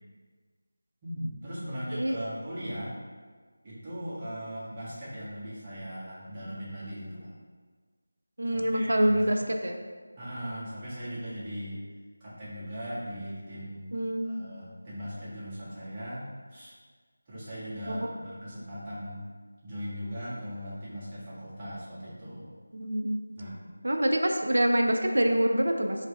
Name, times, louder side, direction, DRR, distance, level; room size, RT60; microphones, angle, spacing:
voice 1, 1.0-2.9 3.6-7.4 8.5-9.4 10.2-11.8 12.2-13.9 14.2-16.7 17.3-19.3 19.6-22.5 23.3-23.6, equal, 20° right, -10 dB, 1.3 m, -39 dB
voice 2, 8.4-9.8 13.9-14.4 17.9-18.0 22.7-23.2 23.8-26.0, right 1 dB, 70° right, 3 dB, 0.4 m, -25 dB
3.3 x 3.2 x 4.1 m, 1.5 s
figure-of-eight pair, 165°, 0 cm